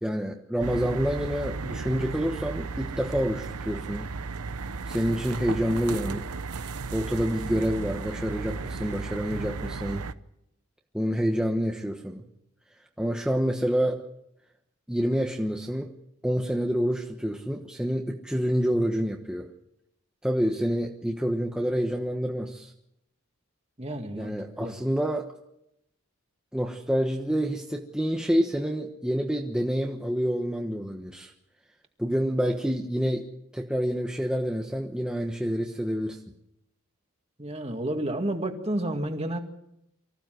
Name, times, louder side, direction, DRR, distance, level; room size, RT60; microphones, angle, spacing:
voice 1, 0.0-4.1 4.9-6.3 6.9-10.1 10.9-12.2 13.0-14.0 14.9-15.9 16.2-19.5 20.2-22.7 24.1-25.3 26.5-31.3 32.0-36.2, equal, 5° right, 1 dB, 1.1 m, -28 dB
sound 1, 0.6-10.1, right 4 dB, 85° right, 0.8 m, -35 dB
voice 2, 23.8-24.8 37.4-39.4, right 1 dB, 25° right, 4 dB, 2.1 m, -31 dB
24.5 x 15.0 x 7.8 m, 0.80 s
head